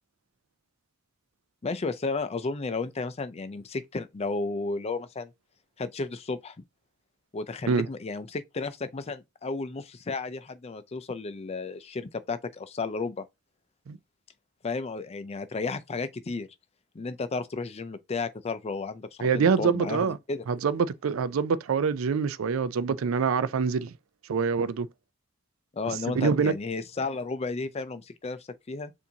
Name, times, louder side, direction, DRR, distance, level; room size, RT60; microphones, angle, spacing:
voice 1, 1.6-5.3 5.8-6.5 7.3-13.2 14.6-16.5 16.9-20.4 25.7-28.9, left 3 dB, 30° left, 0.4 m, -33 dB
voice 2, 19.2-20.2 20.5-23.9 24.3-24.9 26.1-26.5, right 5 dB, 85° right, 0.4 m, -25 dB
7.0 x 2.6 x 2.8 m
head